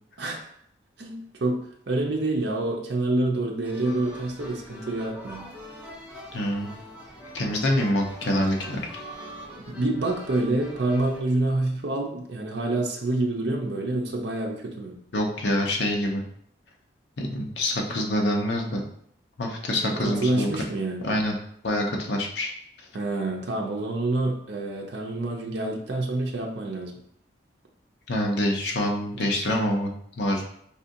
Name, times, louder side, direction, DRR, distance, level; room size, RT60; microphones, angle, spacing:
voice 1, 1.0-1.6 1.9-5.5 9.7-15.0 19.9-21.1 22.9-26.9 29.1-29.3, right 2 dB, 70° right, 0 dB, 0.6 m, -27 dB
sound 1, 3.6-11.2, equal, 5° right, 0.7 m, -43 dB
voice 2, 6.3-6.7 7.3-8.8 15.1-16.2 17.2-18.8 19.4-20.5 21.0-21.4 21.6-22.5 28.1-30.4, left 1 dB, 75° left, 0 dB, 0.8 m, -26 dB
4.9 x 2.7 x 2.6 m, 0.68 s
head